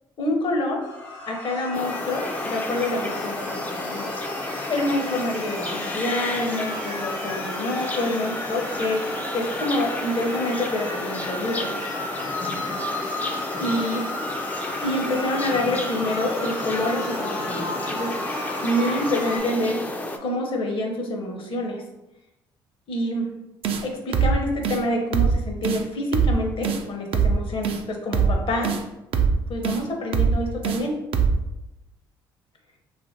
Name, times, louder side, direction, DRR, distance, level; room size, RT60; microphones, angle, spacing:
voice 1, 0.2-0.9 1.3-4.1 4.7-11.7 13.6-14.0 14.8-18.3 18.6-19.9 20.2-21.8 22.9-23.3 23.8-28.7 29.5-31.0, left 1 dB, 50° left, 2 dB, 0.7 m, -27 dB
sound 1, 0.8-19.4, left 1 dB, 90° left, 0.7 m, -34 dB
sound 2, 1.7-20.2, left 2 dB, 15° left, 0.3 m, -32 dB
sound 3, 23.6-23.8 24.1-24.4 24.6-24.8 25.1-25.4 25.6-25.8 26.1-26.4 26.6-26.8 27.1-27.4 27.6-27.8 28.1-28.4 28.6-28.8 29.1-29.4 29.6-29.8 30.1-30.4 30.6-30.8 31.1-31.4, right 6 dB, 60° right, 0.4 m, -21 dB
2.8 x 2.5 x 2.7 m, 0.95 s
supercardioid pair, 60°, 11 cm